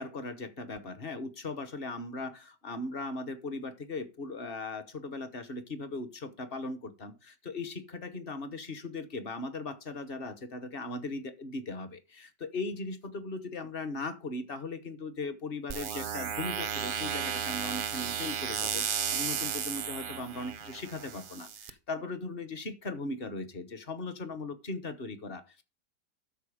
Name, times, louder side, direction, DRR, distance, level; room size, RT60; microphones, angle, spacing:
voice 1, 0.0-25.6, left 3 dB, 40° left, 1.0 m, -38 dB
sound 1, 15.7-21.7, right 7 dB, 50° right, 0.6 m, -34 dB
13.0 x 4.6 x 4.9 m
omnidirectional pair, 1.7 m